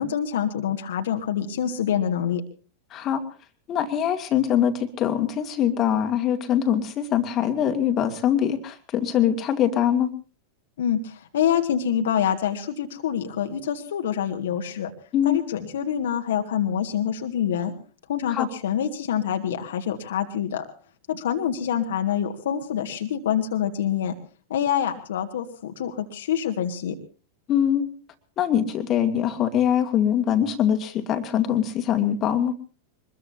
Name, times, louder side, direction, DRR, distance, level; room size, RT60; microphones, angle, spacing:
voice 1, 0.0-2.4 10.8-14.9 15.2-17.7 18.1-20.6 21.1-24.1 24.5-27.0, left 9 dB, 60° left, 4 dB, 1.9 m, -26 dB
voice 2, 2.9-3.2 3.7-10.1 15.1-15.4 18.3-18.5 27.5-27.9 28.4-32.5, left 9 dB, 30° left, 6 dB, 2.2 m, -23 dB
24.0 x 21.5 x 2.8 m, 0.38 s
figure-of-eight pair, 90°, 0 cm